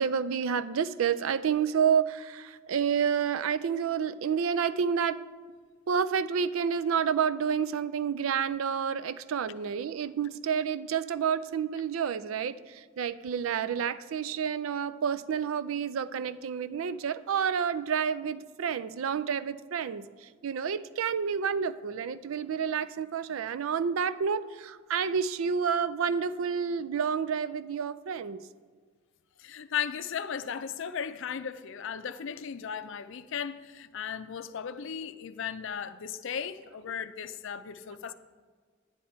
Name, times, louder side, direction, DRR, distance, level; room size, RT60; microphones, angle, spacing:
voice 1, 0.0-5.2 5.9-28.4, right 7 dB, 75° right, 0.4 m, -29 dB
voice 2, 29.4-38.1, left 7 dB, 65° left, 0.5 m, -36 dB
10.5 x 9.3 x 4.3 m
head